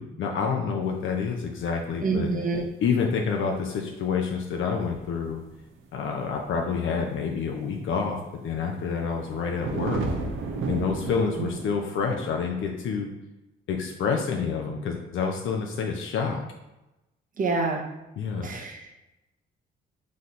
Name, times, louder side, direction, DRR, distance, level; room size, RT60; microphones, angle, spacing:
voice 1, 0.0-2.3 2.8-5.4 5.9-10.0 10.7-13.1 13.7-16.4 18.2-18.5, left 5 dB, 70° left, 1 dB, 0.6 m, -28 dB
voice 2, 2.0-2.6 11.4-11.5 17.4-17.8 18.4-18.9, right 4 dB, 40° right, 2 dB, 0.9 m, -27 dB
sound 1, 4.7-5.8 6.4-6.6 7.6-7.7 8.8-11.6, right 3 dB, 75° right, 0.7 m, -32 dB
3.9 x 3.2 x 4.2 m, 0.96 s
cardioid pair, 85°, 21 cm